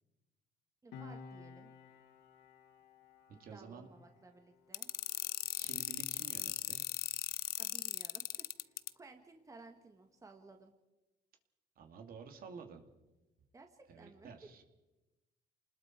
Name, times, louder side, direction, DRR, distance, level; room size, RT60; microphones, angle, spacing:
voice 1, 0.8-1.7 3.4-4.9 7.6-10.7 13.5-14.5, right 3 dB, 20° right, 4 dB, 1.9 m, -57 dB
Piano, 0.9-7.9 8.2-8.4, left 5 dB, 80° left, 2.1 m, -56 dB
voice 2, 3.4-3.9 5.6-6.8 11.8-12.8 13.9-14.6, right 5 dB, 60° right, 5 dB, 2.7 m, -51 dB
sound 1, 4.7-8.9, left 14 dB, 65° left, 0.7 m, -37 dB
29.0 x 20.0 x 4.6 m, 1.0 s
cardioid pair, 110°, 17 cm